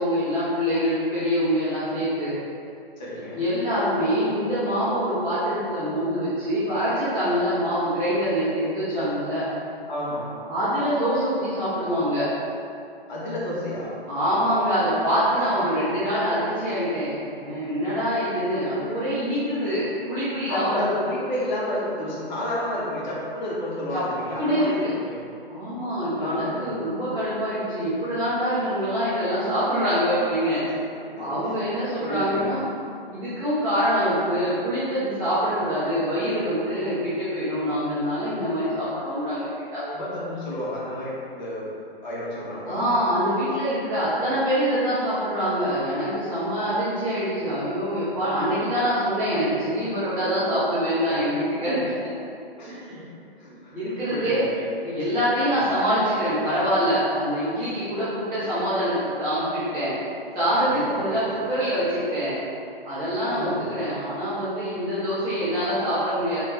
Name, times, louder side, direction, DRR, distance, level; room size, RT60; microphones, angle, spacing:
voice 1, 0.0-2.4 3.3-9.5 10.5-12.3 14.1-20.8 23.9-24.0 24.4-24.9 25.5-30.6 31.2-32.7 33.1-39.8 42.7-51.8 52.7-53.0 53.7-54.4 54.8-62.3 62.8-66.4, equal, 10° right, -14 dB, 0.5 m, -25 dB
voice 2, 3.0-3.4 9.3-9.4 9.9-10.3 13.1-13.9 18.6-18.9 20.5-25.2 26.2-26.7 30.9-31.3 32.0-32.5 39.8-41.7 42.0-42.8 51.1-51.2 52.6-53.0 53.4-53.7 54.1-54.4 55.0-55.1 55.5-55.6 60.6-61.2 63.3-63.7, left 1 dB, 45° left, -6 dB, 0.8 m, -31 dB
3.1 x 2.2 x 2.8 m, 2.5 s
figure-of-eight pair, 125°, 31 cm